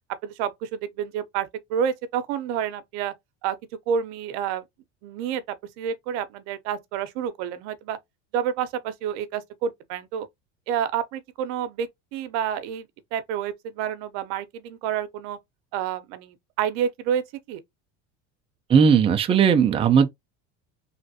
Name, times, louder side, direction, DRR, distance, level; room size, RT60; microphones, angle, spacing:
voice 1, 0.2-3.1 3.4-3.6 3.9-4.6 5.0-5.4 5.8-8.0 8.3-10.3 10.7-12.9 13.1-15.4 15.7-17.6, right 8 dB, 70° right, 0.7 m, -29 dB
voice 2, 18.7-20.1, right 6 dB, 20° right, 0.4 m, -17 dB
3.2 x 2.5 x 2.6 m
supercardioid pair, 130°, 34 cm